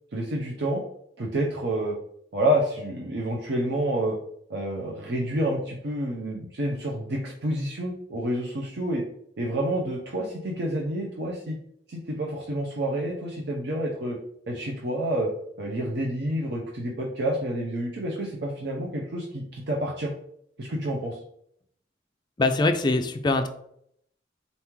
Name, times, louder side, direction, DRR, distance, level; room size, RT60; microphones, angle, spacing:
voice 1, 0.1-0.8 1.2-2.0 2.3-4.2 4.5-9.0 9.4-11.6 11.9-14.2 14.5-15.3 15.6-20.1 20.6-21.2, right 1 dB, 65° right, -2 dB, 0.6 m, -28 dB
voice 2, 22.4-23.5, left 2 dB, 25° left, 7 dB, 0.4 m, -23 dB
4.1 x 3.0 x 3.6 m, 0.70 s
head